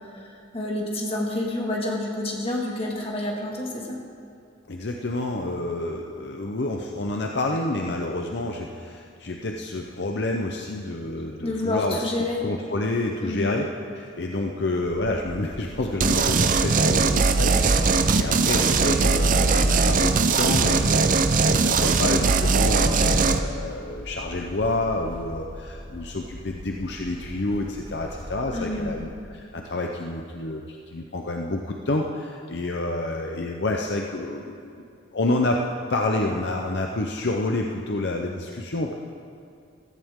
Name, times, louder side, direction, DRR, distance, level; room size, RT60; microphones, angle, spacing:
voice 1, 0.0-4.0 11.4-12.4 13.2-13.6 28.5-29.0, left 1 dB, 30° left, -2 dB, 2.0 m, -29 dB
voice 2, 4.7-12.0 12.4-13.7 13.9-34.5 35.1-35.6 35.9-38.9, left 2 dB, 60° left, 1 dB, 0.7 m, -28 dB
sound 1, 14.8-29.0, equal, 20° right, 3.9 m, -41 dB
sound 2, 16.0-23.4, right 4 dB, 40° right, 0.6 m, -20 dB
16.0 x 14.0 x 3.7 m, 2.5 s
head